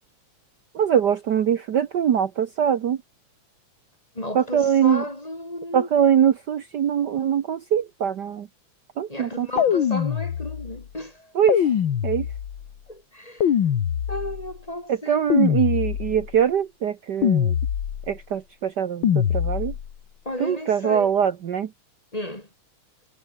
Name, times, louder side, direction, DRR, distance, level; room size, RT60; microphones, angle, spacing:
voice 1, 0.7-3.0 4.3-5.0 5.7-8.5 9.0-9.5 11.3-11.7 12.0-12.3 14.9-17.5 18.1-19.7 20.4-21.7, right 8 dB, 80° right, 0.9 m, -22 dB
voice 2, 4.1-5.9 9.1-11.3 12.9-13.5 14.1-15.2 20.2-21.1 22.1-22.5, left 1 dB, 15° left, 2.7 m, -33 dB
sound 1, 9.6-10.8 11.5-12.7 13.4-14.5 15.3-16.3 17.2-18.2 19.0-19.9, left 9 dB, 50° left, 1.7 m, -23 dB
omnidirectional pair, 3.4 m